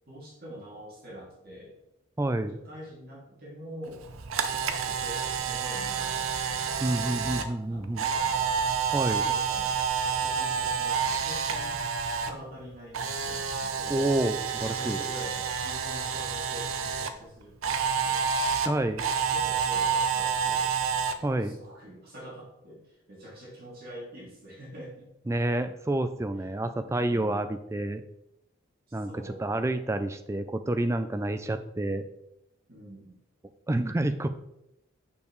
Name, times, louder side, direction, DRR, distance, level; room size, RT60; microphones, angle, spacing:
voice 1, 0.1-1.8 2.5-4.0 4.6-7.0 7.5-8.5 9.2-9.8 10.0-11.8 12.1-14.1 14.6-18.3 19.2-20.7 21.2-22.8 23.1-25.1 28.9-29.5 32.7-33.2, equal, 45° right, -5 dB, 2.5 m, -45 dB
voice 2, 2.2-2.6 6.8-8.1 8.9-9.3 13.9-15.1 18.6-19.0 21.2-21.6 25.3-28.0 28.9-32.0 33.7-34.3, right 1 dB, 15° right, 10 dB, 0.3 m, -29 dB
Camera, 4.0-12.3 12.6-17.1 17.6-21.1, right 6 dB, 80° right, 0.6 m, -29 dB
6.6 x 5.6 x 3.1 m, 0.84 s
head